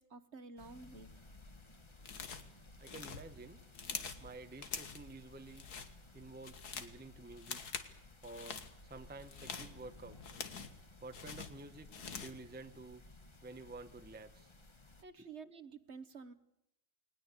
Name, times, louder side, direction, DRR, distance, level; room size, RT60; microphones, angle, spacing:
voice 1, 0.0-1.3 15.0-16.3, right 4 dB, 50° right, 12 dB, 1.4 m, -51 dB
sound 1, 0.6-15.0, left 2 dB, 20° left, 1.2 m, -58 dB
sound 2, 2.0-2.5 2.8-4.2 4.6-5.1 5.5-5.9 6.3-7.0 7.4-7.9 8.2-8.7 9.2-10.8 11.1-12.4, left 6 dB, 80° left, 2.2 m, -45 dB
voice 2, 2.8-3.6 4.2-5.6 6.1-7.6 8.2-10.2 11.0-11.9 12.2-13.0 13.4-14.5, right 3 dB, 10° right, 10 dB, 0.8 m, -51 dB
20.5 x 20.0 x 8.2 m, 0.79 s
omnidirectional pair, 1.7 m